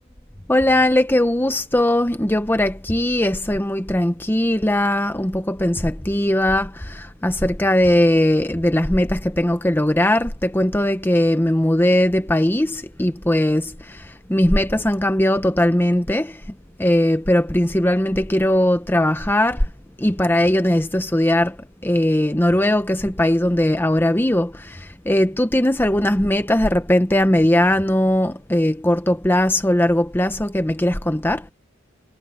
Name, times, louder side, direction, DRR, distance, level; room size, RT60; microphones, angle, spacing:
voice 1, 0.5-16.4 16.8-19.7 20.0-21.6 21.8-31.5, left 1 dB, 10° left, 0.8 m, -19 dB
head